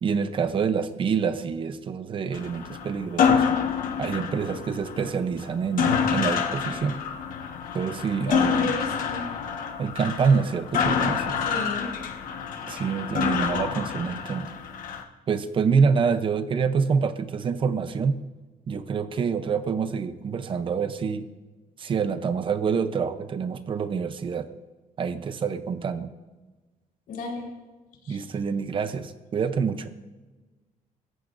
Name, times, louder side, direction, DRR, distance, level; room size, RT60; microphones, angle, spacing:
voice 1, 0.0-3.4 4.0-7.0 7.7-8.8 9.8-11.4 12.7-14.5 15.3-18.2 18.7-21.3 21.8-24.5 25.0-26.1 28.1-29.9, right 6 dB, 35° right, 10 dB, 0.7 m, -26 dB
sound 1, 2.3-15.0, left 7 dB, 70° left, 1.4 m, -27 dB
voice 2, 8.2-9.2 11.4-11.9 27.1-27.5 28.0-28.2, left 3 dB, 85° left, 0 dB, 4.3 m, -32 dB
25.0 x 14.5 x 2.6 m, 1.2 s
cardioid pair, 170°, 15 cm